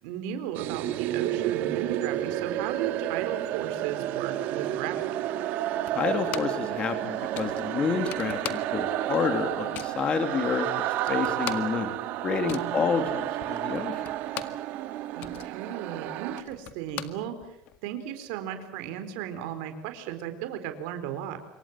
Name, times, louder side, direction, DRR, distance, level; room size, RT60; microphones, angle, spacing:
voice 1, 0.0-5.1 12.4-13.1 15.1-21.4, right 10 dB, 80° right, 8 dB, 4.0 m, -35 dB
sound 1, 0.5-16.4, right 13 dB, 60° right, 1.7 m, -31 dB
sound 2, 5.9-6.7 7.0-7.1 7.3-9.0 9.3-10.0 10.6-10.7 10.9-14.7 15.0-17.8, left 12 dB, 55° left, 1.8 m, -40 dB
voice 2, 5.9-10.7 11.1-12.0 12.2-14.0, left 5 dB, 30° left, 7 dB, 2.7 m, -29 dB
26.5 x 24.0 x 7.5 m, 0.83 s
cardioid pair, 140°, 3 cm